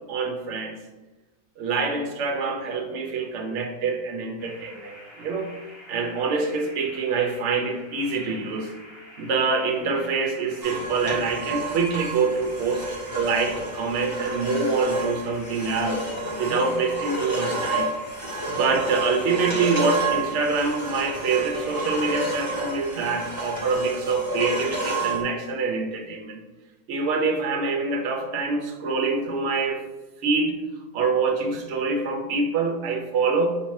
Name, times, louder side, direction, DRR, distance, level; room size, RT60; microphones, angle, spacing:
voice 1, 0.1-0.8 1.6-5.5 5.9-8.7 9.2-16.1 16.4-17.9 18.5-26.4 26.9-29.8 30.2-30.6 30.9-33.6, right 4 dB, 65° right, 3 dB, 0.9 m, -25 dB
sound 1, 4.4-23.7, equal, 20° left, 0.8 m, -47 dB
sound 2, 10.6-25.2, right 2 dB, 20° right, 0.9 m, -30 dB
4.9 x 2.8 x 3.1 m, 1.1 s
omnidirectional pair, 1.5 m